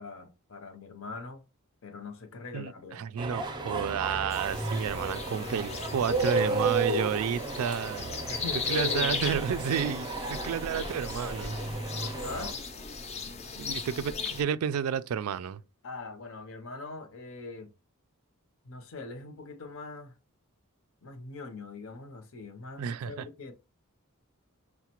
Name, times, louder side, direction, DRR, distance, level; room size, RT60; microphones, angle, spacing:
voice 1, 0.0-1.4 1.8-3.0 8.3-9.2 12.2-12.5 15.8-17.7 18.6-20.1 21.0-23.5, left 4 dB, 65° left, 0.7 m, -41 dB
voice 2, 2.5-8.1 8.7-11.6 13.6-15.6 22.8-23.3, right 8 dB, 75° right, 0.3 m, -31 dB
sound 1, 3.2-12.5, right 3 dB, 20° right, 0.5 m, -33 dB
sound 2, 4.3-14.4, left 5 dB, 30° left, 0.4 m, -37 dB
5.6 x 2.1 x 2.9 m
head